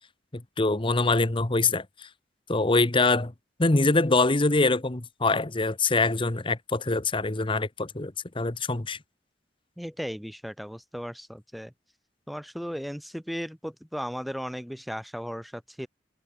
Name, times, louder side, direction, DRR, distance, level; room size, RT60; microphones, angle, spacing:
voice 1, 0.3-1.8 2.5-3.3 3.6-9.0, left 3 dB, 30° left, 1.1 m, -24 dB
voice 2, 9.8-11.7 12.3-15.9, equal, ahead, 1.0 m, -36 dB
head